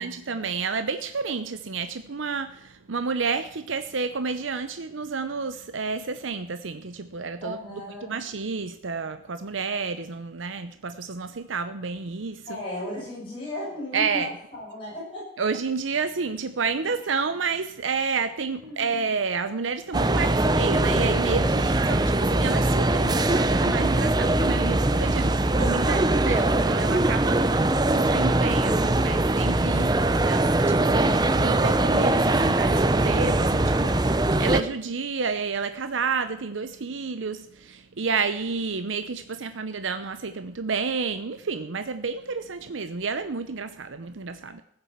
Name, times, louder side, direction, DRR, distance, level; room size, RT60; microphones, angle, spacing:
voice 1, 0.0-12.6 13.9-14.3 15.4-27.4 27.9-44.6, right 5 dB, 85° right, 10 dB, 0.7 m, -30 dB
voice 2, 7.4-8.2 12.5-15.3 18.6-18.9 21.4-22.1, left 1 dB, 25° left, -7 dB, 7.8 m, -36 dB
sound 1, 19.9-34.6, right 2 dB, 20° right, 0.6 m, -22 dB
15.0 x 8.8 x 7.3 m, 0.74 s
head